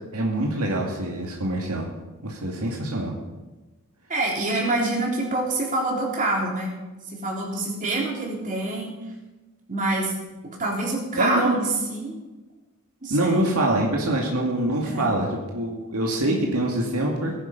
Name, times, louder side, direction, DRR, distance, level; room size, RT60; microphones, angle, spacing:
voice 1, 0.1-1.8 2.2-3.1 11.2-11.5 13.1-17.4, right 1 dB, 85° right, -1 dB, 2.3 m, -24 dB
voice 2, 4.1-6.7 7.0-9.0 9.7-10.1 10.6-12.1 13.0-13.4 14.8-15.1, right 2 dB, 40° right, -2 dB, 3.7 m, -26 dB
17.5 x 10.5 x 5.4 m, 1.2 s
head